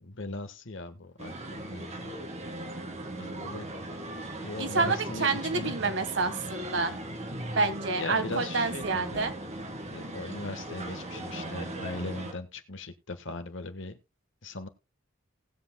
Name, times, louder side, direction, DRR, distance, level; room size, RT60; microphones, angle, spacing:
voice 1, 0.0-2.1 3.2-3.7 4.3-5.7 8.0-9.3 9.9-14.0 14.4-14.7, left 2 dB, 65° left, 8 dB, 1.4 m, -39 dB
sound 1, 1.2-12.3, right 1 dB, 35° right, 2.0 m, -38 dB
voice 2, 4.6-7.0 7.6-9.3, right 4 dB, 65° right, 8 dB, 1.6 m, -28 dB
19.0 x 7.9 x 2.3 m, 0.26 s
head